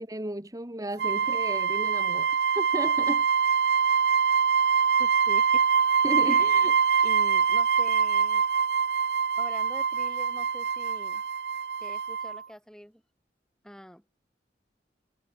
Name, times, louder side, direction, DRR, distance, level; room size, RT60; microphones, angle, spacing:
voice 1, 0.0-3.3 6.0-7.1, right 1 dB, 20° right, 1.7 m, -34 dB
sound 1, 1.0-12.4, right 6 dB, 65° right, 0.6 m, -24 dB
voice 2, 5.0-5.7 6.2-6.5 7.0-8.4 9.4-11.2 11.8-13.0 13.6-14.0, equal, 5° left, 5.5 m, -44 dB
head